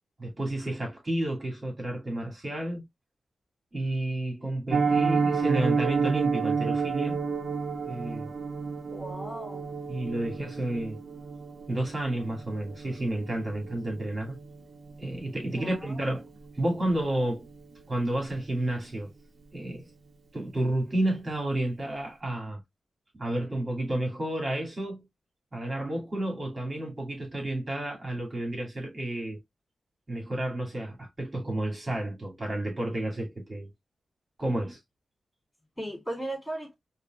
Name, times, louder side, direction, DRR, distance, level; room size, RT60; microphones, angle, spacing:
voice 1, 0.2-2.9 3.7-7.2 7.9-8.3 9.9-11.0 11.7-14.4 15.0-16.3 16.6-17.5 17.9-19.1 19.5-19.9 20.3-22.6 23.1-25.0 25.5-29.4 30.1-33.7 34.4-34.8, right 1 dB, 35° right, 2.3 m, -31 dB
Piano, 4.7-15.6 15.9-16.1 16.4-16.5 16.9-17.1 17.5-17.6, right 5 dB, 70° right, 1.0 m, -30 dB
voice 2, 8.9-9.8 15.5-16.1 35.8-36.7, right 1 dB, 10° left, 2.9 m, -37 dB
5.1 x 2.8 x 2.3 m
cardioid pair, 60°, 0 cm